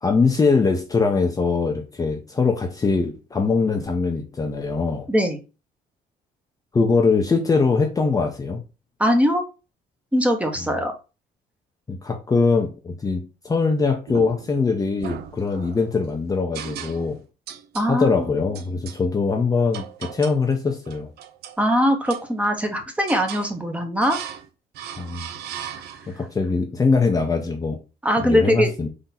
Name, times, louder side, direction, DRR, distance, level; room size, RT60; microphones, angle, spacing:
voice 1, 0.0-5.1 6.7-8.6 10.6-10.7 11.9-17.2 17.9-21.1 25.0-25.3 26.2-27.8 28.2-28.9, left 4 dB, 20° left, 0.6 m, -22 dB
voice 2, 5.1-5.4 9.0-9.4 10.1-10.9 17.7-18.2 21.6-24.2 28.0-28.7, equal, 10° right, 0.9 m, -21 dB
sound 1, 14.1-14.6 15.0-15.9 16.5-17.2 17.5-17.9 18.5-19.0 19.7-20.5 20.9-21.6 22.1-22.7 23.1-23.5 24.0-24.5 24.7-26.2, right 9 dB, 70° right, 0.6 m, -37 dB
3.8 x 2.8 x 4.1 m
cardioid pair, 110°, 17 cm